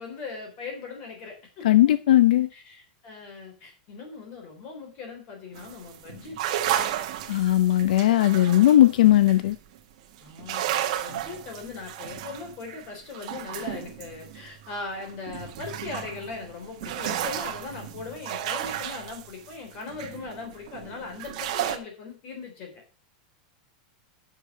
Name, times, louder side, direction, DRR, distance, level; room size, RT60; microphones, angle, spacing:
voice 1, 0.0-1.7 2.5-6.4 10.2-22.8, left 4 dB, 30° left, 3.5 m, -39 dB
voice 2, 1.6-2.5 7.3-9.6, left 13 dB, 80° left, 0.6 m, -18 dB
Walking In A Flooded Mine, 5.5-9.8 10.2-21.8, right 11 dB, 50° right, 1.3 m, -33 dB
7.5 x 6.7 x 6.6 m
supercardioid pair, 180°, 4 cm